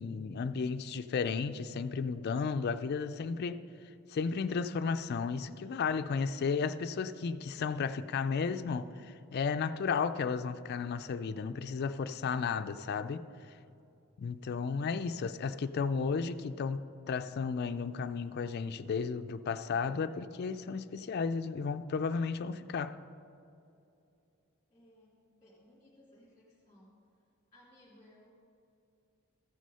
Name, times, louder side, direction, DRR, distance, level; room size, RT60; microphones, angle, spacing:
voice 1, 0.0-3.6 4.1-8.9 9.3-13.2 14.2-23.0, left 5 dB, 50° left, 0.3 m, -33 dB
voice 2, 24.7-27.0 27.5-28.3, left 1 dB, 15° left, 2.6 m, -61 dB
14.0 x 6.2 x 5.5 m
head